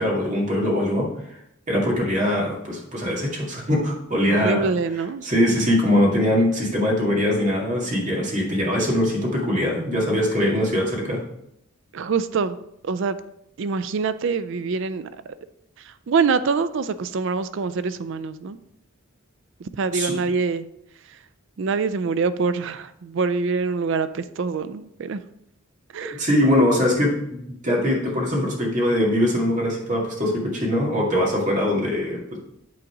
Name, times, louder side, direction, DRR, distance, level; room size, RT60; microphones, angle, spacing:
voice 1, 0.0-1.4 1.7-4.7 5.2-11.2 19.9-20.2 26.0-32.4, left 1 dB, 35° right, -3 dB, 2.0 m, -22 dB
voice 2, 4.2-5.2 11.9-12.6 12.8-13.2 13.6-15.3 15.8-18.6 19.6-20.7 21.6-25.2 25.9-26.2, right 5 dB, 60° right, 13 dB, 0.4 m, -25 dB
8.5 x 3.9 x 4.8 m, 0.77 s
head